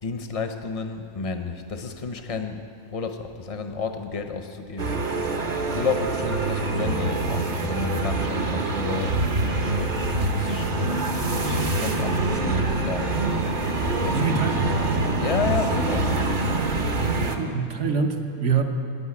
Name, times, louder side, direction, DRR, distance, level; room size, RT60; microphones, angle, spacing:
voice 1, 0.0-5.0 5.7-9.2 10.2-13.3 13.9-14.6 15.2-16.2, left 4 dB, 30° left, 6 dB, 0.7 m, -31 dB
sound 1, 4.8-17.4, right 2 dB, 40° right, 1.0 m, -25 dB
voice 2, 14.1-14.7 17.4-18.6, right 6 dB, 60° right, 4 dB, 1.3 m, -24 dB
11.0 x 9.6 x 9.6 m, 2.4 s
omnidirectional pair, 1.5 m